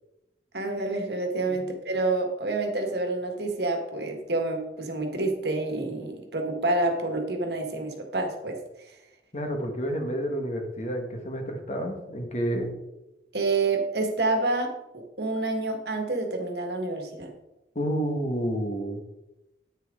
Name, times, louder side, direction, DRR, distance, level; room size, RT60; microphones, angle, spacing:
voice 1, 0.5-8.6 13.3-17.3, right 2 dB, 70° right, 4 dB, 1.7 m, -28 dB
voice 2, 9.3-12.7 17.7-19.0, equal, 40° left, 3 dB, 1.7 m, -30 dB
10.0 x 9.0 x 3.8 m, 0.95 s
head